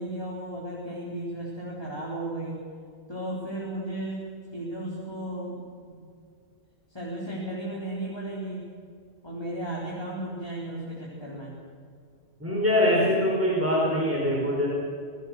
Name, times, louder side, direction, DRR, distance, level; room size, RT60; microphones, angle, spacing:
voice 1, 0.0-2.6 3.1-4.2 4.5-6.0 6.9-8.6 9.2-11.6, right 1 dB, 20° left, -5 dB, 4.1 m, -34 dB
voice 2, 12.4-14.7, left 1 dB, 10° right, -4 dB, 4.8 m, -23 dB
26.0 x 19.5 x 6.5 m, 2.3 s
omnidirectional pair, 1.2 m